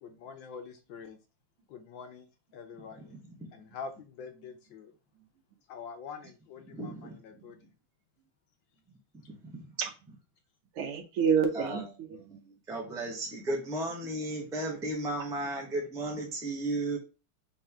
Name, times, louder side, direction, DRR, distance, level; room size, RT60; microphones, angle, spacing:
voice 1, 0.0-1.2 1.7-2.3 2.5-3.2 3.5-4.9 5.7-7.7, left 6 dB, 70° left, 1.3 m, -45 dB
voice 2, 3.0-3.4 6.7-7.2 9.1-9.8 11.5-11.9 12.3-17.0, right 1 dB, 5° right, 0.4 m, -35 dB
voice 3, 10.7-12.4, right 7 dB, 85° right, 1.8 m, -29 dB
5.4 x 2.7 x 3.4 m
omnidirectional pair, 2.4 m